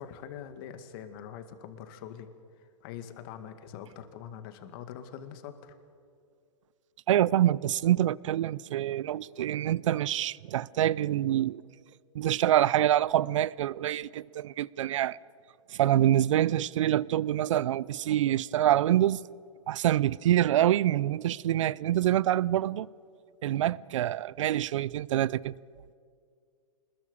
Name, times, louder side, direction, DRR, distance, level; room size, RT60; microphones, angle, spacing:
voice 1, 0.0-2.3 2.6-5.8, left 9 dB, 40° left, 2.1 m, -43 dB
voice 2, 7.1-11.6 12.1-15.2 15.7-19.2 19.7-22.9 23.4-25.6, right 12 dB, 60° right, 0.6 m, -26 dB
26.0 x 20.5 x 7.0 m
hypercardioid pair, 140°, 18 cm